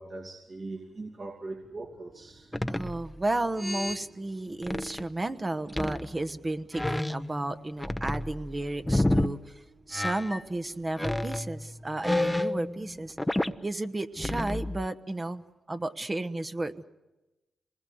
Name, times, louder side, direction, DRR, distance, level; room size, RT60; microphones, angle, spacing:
voice 1, 0.0-2.5, right 2 dB, 50° right, 2.7 m, -40 dB
sound 1, 1.5-13.6, right 2 dB, 70° right, 6.9 m, -59 dB
sound 2, 2.5-3.2 3.6-4.0 4.6-5.1 5.7-6.4 6.7-9.3 9.9-10.4 11.0-13.5 14.2-14.9, left 1 dB, 10° left, 0.8 m, -30 dB
voice 2, 2.7-13.2 13.6-16.8, right 2 dB, 25° right, 1.1 m, -33 dB
25.5 x 20.0 x 7.9 m
cardioid pair, 65°, 0 cm